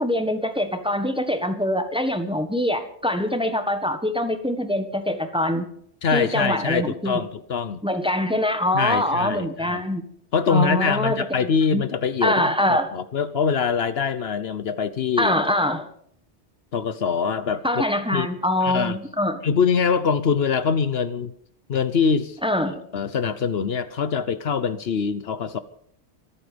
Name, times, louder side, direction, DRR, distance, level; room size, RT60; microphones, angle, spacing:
voice 1, 0.0-5.7 6.1-7.3 7.8-10.0 10.5-11.3 11.7-11.8 12.2-12.9 15.2-15.9 17.6-19.4 22.4-22.8, left 1 dB, 5° right, 8 dB, 1.4 m, -24 dB
voice 2, 6.0-7.8 8.7-9.8 10.3-12.4 12.7-15.3 16.7-17.6 18.1-18.3 18.6-19.0 19.4-21.3 21.7-22.4 22.9-25.6, left 6 dB, 65° left, 14 dB, 1.0 m, -23 dB
25.0 x 8.9 x 5.2 m, 0.64 s
omnidirectional pair, 1.1 m